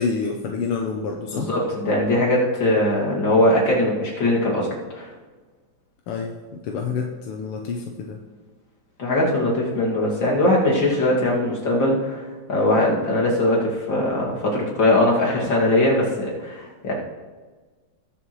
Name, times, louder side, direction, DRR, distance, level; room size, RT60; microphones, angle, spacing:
voice 1, 0.0-1.5 6.1-8.2, left 5 dB, 85° left, 2 dB, 1.8 m, -28 dB
voice 2, 1.3-4.7 4.9-5.1 9.0-16.9, left 1 dB, 60° left, -3 dB, 3.0 m, -21 dB
19.5 x 7.5 x 3.2 m, 1.4 s
omnidirectional pair, 2.4 m